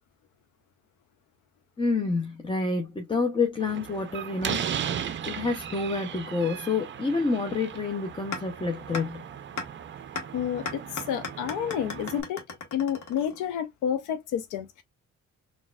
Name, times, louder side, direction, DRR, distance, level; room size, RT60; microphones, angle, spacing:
voice 1, 1.8-4.6 4.9-9.2, left 4 dB, 15° left, 0.6 m, -28 dB
Slam, 3.6-12.2, right 8 dB, 40° right, 0.5 m, -36 dB
sound 1, 8.3-8.4 8.9-9.0 9.6-9.7 10.1-10.2 10.6-13.6, left 4 dB, 70° left, 1.2 m, -35 dB
voice 2, 10.3-14.8, left 9 dB, 90° left, 0.5 m, -30 dB
4.0 x 2.4 x 2.3 m
cardioid pair, 90°, 30 cm